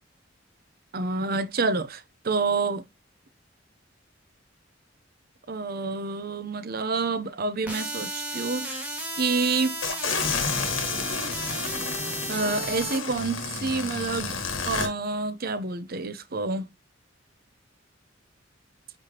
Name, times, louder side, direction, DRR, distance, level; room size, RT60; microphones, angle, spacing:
voice 1, 0.9-2.8 5.5-8.8 9.2-9.8 12.3-14.4 14.7-16.7, right 3 dB, 50° right, 0.8 m, -28 dB
sound 1, 7.7-13.0, right 1 dB, 10° right, 2.1 m, -34 dB
sound 2, 9.8-14.9, left 5 dB, 90° left, 1.5 m, -30 dB
9.8 x 3.6 x 2.9 m
head